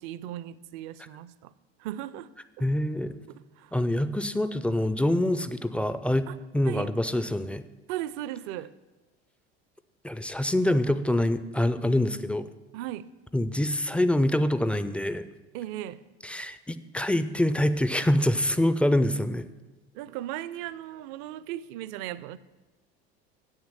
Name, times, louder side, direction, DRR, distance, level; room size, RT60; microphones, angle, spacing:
voice 1, 0.0-1.5 1.8-2.3 3.3-3.7 6.3-6.4 6.6-6.9 7.9-8.7 12.7-13.1 15.5-16.0 19.9-22.4, right 13 dB, 55° right, 0.5 m, -37 dB
voice 2, 2.6-3.2 3.7-6.3 6.5-7.6 10.0-12.5 13.3-15.2 16.2-19.5, left 1 dB, 5° left, 0.4 m, -25 dB
8.0 x 6.5 x 7.4 m
hypercardioid pair, 70°, 32 cm